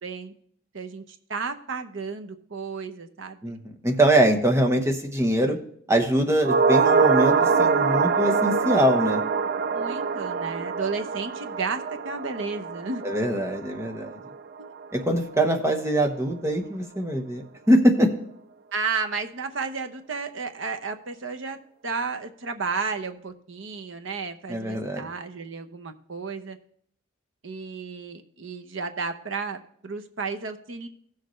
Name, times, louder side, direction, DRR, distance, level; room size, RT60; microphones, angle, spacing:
voice 1, 0.0-0.3 0.7-3.5 9.7-13.0 18.7-21.6 21.8-26.6 27.4-30.9, right 4 dB, 65° right, 7 dB, 0.8 m, -33 dB
voice 2, 3.8-5.6 5.9-9.2 13.0-14.1 14.9-18.1 24.5-25.0, right 1 dB, 15° right, 3 dB, 1.0 m, -23 dB
sound 1, 6.4-14.9 15.1-15.2, right 5 dB, 45° right, 0.3 m, -24 dB
15.5 x 6.6 x 3.2 m, 0.63 s
head